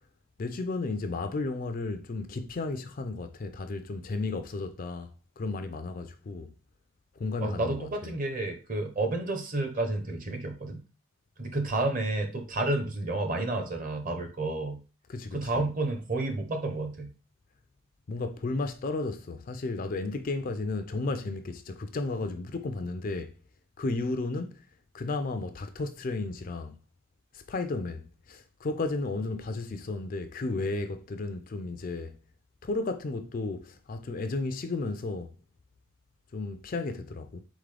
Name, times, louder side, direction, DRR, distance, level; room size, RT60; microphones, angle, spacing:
voice 1, 0.4-5.1 5.4-6.5 7.2-8.1 15.1-15.6 18.1-23.3 23.8-24.6 24.9-26.7 27.3-28.0 28.3-32.1 32.6-35.3 36.3-37.4, left 3 dB, 40° left, 0.4 m, -33 dB
voice 2, 7.4-10.8 11.4-14.8 15.3-17.1, right 2 dB, 40° right, 0.8 m, -30 dB
3.9 x 3.7 x 3.3 m
head